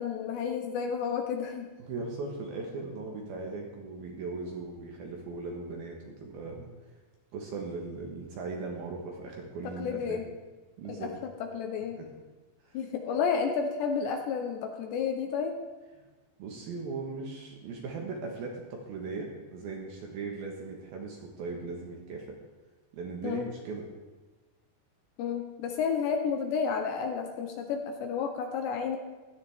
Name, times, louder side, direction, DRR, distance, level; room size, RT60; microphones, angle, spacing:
voice 1, 0.0-1.7 9.8-10.3 10.9-12.0 12.7-15.6 23.2-23.5 25.2-29.0, left 6 dB, 75° left, 4 dB, 2.8 m, -31 dB
voice 2, 1.8-6.7 7.3-10.2 10.8-11.2 12.0-12.1 12.6-12.8 16.0-16.1 16.4-22.3 22.9-23.9, right 3 dB, 65° right, 0 dB, 2.7 m, -38 dB
17.0 x 12.5 x 3.6 m, 1.2 s
omnidirectional pair, 5.6 m